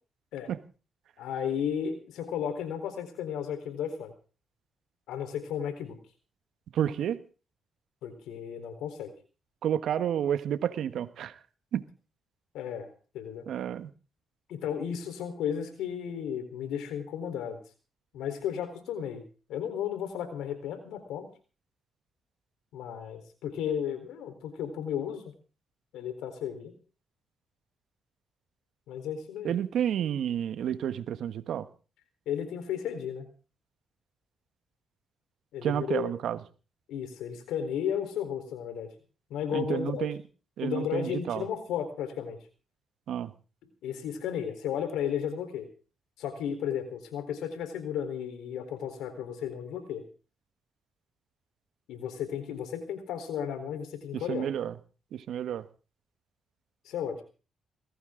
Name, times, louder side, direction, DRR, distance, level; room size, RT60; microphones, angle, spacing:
voice 1, 1.2-4.1 5.1-6.0 8.0-9.1 12.5-12.9 13.1-13.4 14.5-17.6 18.1-19.2 19.5-21.3 22.7-25.2 25.9-26.7 28.9-29.6 32.3-33.3 35.5-36.1 36.9-38.9 39.3-40.1 40.6-42.4 43.8-45.7 46.2-50.0 51.9-54.5 56.9-57.2, left 8 dB, 85° left, 8 dB, 4.0 m, -34 dB
voice 2, 6.7-7.2 9.6-11.3 11.7-11.8 13.5-13.9 29.4-31.6 35.6-36.4 39.5-40.2 40.6-41.4 43.1-43.3 54.3-54.7 55.1-55.6, right 9 dB, 75° right, 12 dB, 1.3 m, -30 dB
21.0 x 16.5 x 3.8 m, 0.37 s
supercardioid pair, 60°, 0 cm